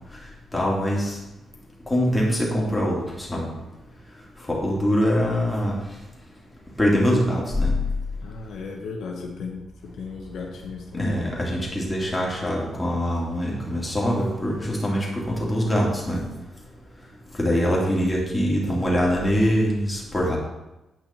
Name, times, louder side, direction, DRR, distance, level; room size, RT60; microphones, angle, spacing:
voice 1, 0.5-1.2 1.9-3.0 3.3-3.5 4.5-5.8 6.8-7.7 10.9-16.2 17.4-20.4, equal, 10° left, -4 dB, 2.7 m, -23 dB
voice 2, 8.2-11.3, left 4 dB, 80° left, 1 dB, 1.2 m, -35 dB
9.1 x 5.6 x 4.4 m, 0.98 s
cardioid pair, 95°, 0 cm